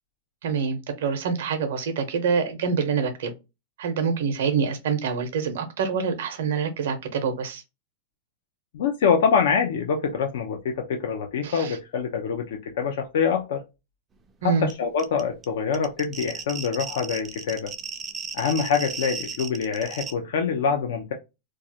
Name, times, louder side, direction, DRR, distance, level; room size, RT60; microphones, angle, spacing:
voice 1, 0.4-3.3 3.8-7.6 11.4-11.8 14.4-14.7, right 6 dB, 75° right, 0.6 m, -26 dB
voice 2, 8.7-13.6 14.4-17.7 18.3-21.1, left 6 dB, 75° left, 0.4 m, -25 dB
sound 1, 14.7-14.8 15.0-20.1, right 5 dB, 20° right, 0.3 m, -35 dB
2.3 x 2.0 x 2.7 m
hypercardioid pair, 130°, 0 cm